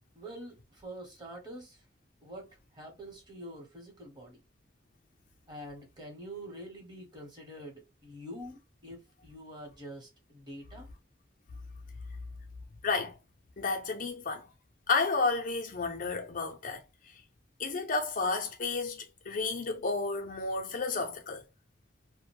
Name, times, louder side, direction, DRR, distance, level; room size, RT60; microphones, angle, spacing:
voice 1, 0.1-1.8 2.2-2.5 2.7-4.4 5.5-10.9, right 1 dB, 25° right, 1.1 m, -46 dB
voice 2, 12.8-13.2 13.6-14.5 14.9-16.8 17.6-21.4, left 4 dB, 50° left, 0.5 m, -31 dB
2.4 x 2.1 x 3.0 m
head